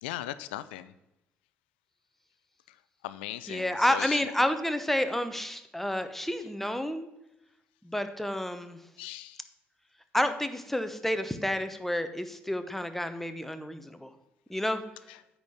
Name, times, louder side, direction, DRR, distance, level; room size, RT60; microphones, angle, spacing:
voice 1, 0.0-0.9 3.0-4.2 9.0-9.4, left 14 dB, 75° left, 14 dB, 0.4 m, -38 dB
voice 2, 3.5-7.1 7.8-8.8 10.1-14.1 14.5-14.8, left 1 dB, 5° left, 9 dB, 1.0 m, -30 dB
9.2 x 4.4 x 7.1 m, 0.90 s
figure-of-eight pair, 50°, 6 cm